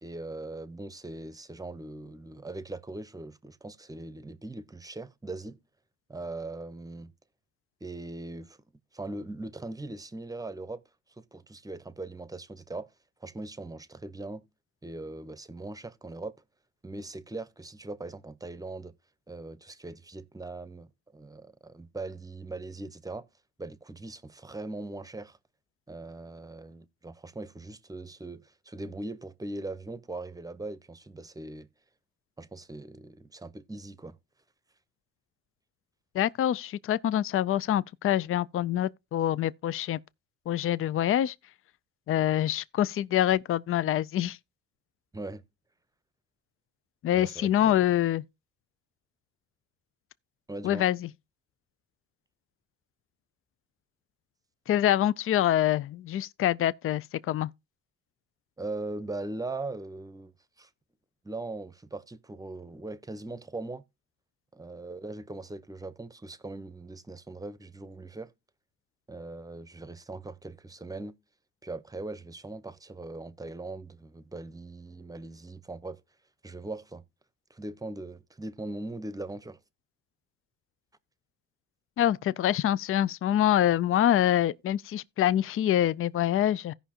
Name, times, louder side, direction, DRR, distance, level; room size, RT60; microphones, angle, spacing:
voice 1, 0.0-5.6 6.1-7.1 7.8-8.6 8.9-10.8 11.2-12.9 13.2-14.4 14.8-16.4 16.8-18.9 19.3-23.3 23.6-25.4 25.9-31.7 32.4-34.2 45.1-45.4 47.1-47.9 50.5-50.9 58.6-60.7 61.2-63.8 64.5-68.3 69.1-71.2 71.6-76.0 76.4-77.0 77.5-79.6, right 2 dB, 10° right, 0.8 m, -40 dB
voice 2, 36.1-40.0 40.5-41.3 42.1-44.4 47.0-48.2 50.6-51.1 54.7-57.5 82.0-86.7, left 12 dB, 45° left, 0.4 m, -25 dB
16.5 x 5.6 x 2.9 m
cardioid pair, 90°, 30 cm